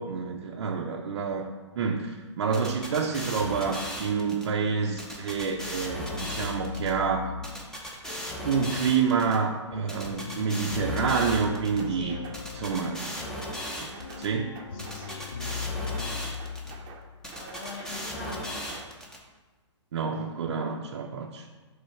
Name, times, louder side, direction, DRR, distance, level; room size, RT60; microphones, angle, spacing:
voice 1, 0.0-1.5 1.7-7.3 8.4-12.2 12.5-13.0 13.8-13.9 14.2-14.5 19.9-21.4, right 5 dB, 60° right, 0 dB, 0.6 m, -28 dB
sound 1, 2.5-4.5 5.0-6.9 7.4-9.4 9.9-11.8 12.3-14.3 14.8-16.7 17.2-19.2, equal, 5° left, 0.9 m, -36 dB
sound 2, 5.4-17.4, left 7 dB, 85° left, 0.5 m, -39 dB
sound 3, 11.8-12.4 12.7-13.3 13.6-14.3 14.5-15.2 15.5-16.1 16.4-17.0 17.3-18.9, right 6 dB, 30° right, 0.8 m, -47 dB
voice 2, 11.9-12.2 13.9-14.3 14.7-15.3 15.6-15.8 17.4-18.6, left 4 dB, 50° left, -1 dB, 1.7 m, -43 dB
5.2 x 3.9 x 5.8 m, 1.3 s
hypercardioid pair, 130°, 16 cm